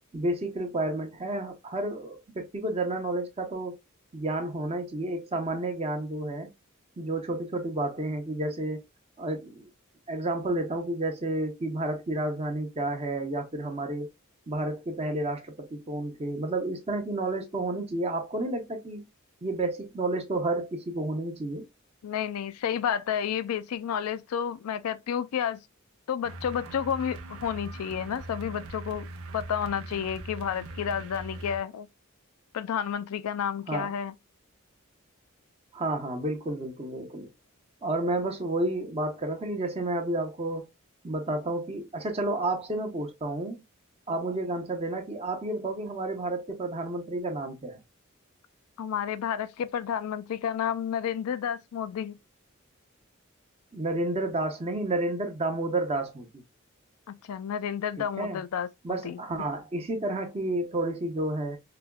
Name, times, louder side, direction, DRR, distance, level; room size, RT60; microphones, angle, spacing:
voice 1, 0.1-3.7 4.1-6.5 7.0-8.8 9.2-9.7 10.1-14.1 14.5-19.1 19.4-21.6 33.7-33.9 35.7-37.3 37.8-40.6 41.0-43.6 44.1-47.8 53.7-56.4 58.2-58.4 58.8-61.6, right 2 dB, 30° right, 0.7 m, -31 dB
voice 2, 22.0-25.6 26.1-29.1 29.3-31.9 32.5-34.1 48.8-52.2 57.1-59.2, left 8 dB, 85° left, 0.4 m, -31 dB
sound 1, 26.2-31.6, right 2 dB, 75° right, 0.6 m, -41 dB
4.9 x 2.2 x 2.3 m
head